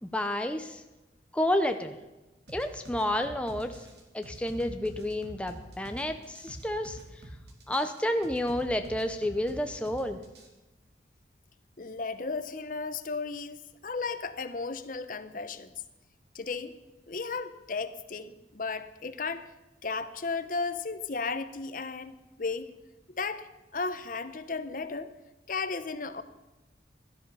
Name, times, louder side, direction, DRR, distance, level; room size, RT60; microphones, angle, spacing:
voice 1, 0.0-0.8 1.3-2.0 2.5-3.7 4.1-7.0 7.7-10.2, left 1 dB, 5° left, 6 dB, 0.7 m, -30 dB
sound 1, 2.5-10.5, right 1 dB, 65° right, 2.5 m, -46 dB
voice 2, 11.8-15.7 16.3-16.7 17.1-19.5 19.8-22.7 23.1-25.2 25.5-26.2, left 4 dB, 45° left, 12 dB, 0.8 m, -35 dB
16.5 x 12.0 x 5.6 m, 1.1 s
head